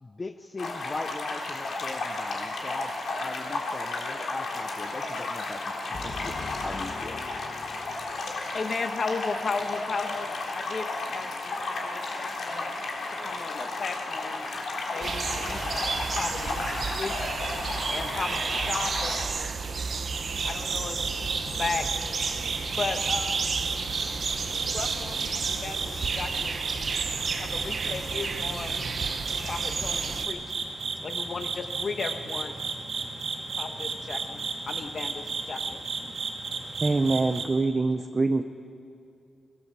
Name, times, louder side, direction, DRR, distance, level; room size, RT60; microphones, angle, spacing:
voice 1, 0.0-5.8 6.0-7.2, left 3 dB, 30° left, 9 dB, 0.6 m, -39 dB
sound 1, 0.6-19.3, left 2 dB, 75° left, 3.4 m, -33 dB
voice 2, 5.9-12.7 13.1-14.4 14.9-15.7 16.2-17.2 17.9-19.3 20.4-21.9 22.8-23.6 24.7-26.6 27.4-28.8 29.5-30.6 31.0-32.6 33.5-35.8, left 4 dB, 50° left, 7 dB, 1.3 m, -36 dB
sound 2, 15.0-30.3, right 5 dB, 55° right, 1.0 m, -32 dB
sound 3, 20.2-37.5, right 4 dB, 75° right, 2.7 m, -34 dB
voice 3, 36.8-38.4, right 3 dB, 30° right, 7 dB, 0.7 m, -24 dB
24.5 x 18.0 x 6.8 m, 2.7 s
wide cardioid pair, 120°, 0 cm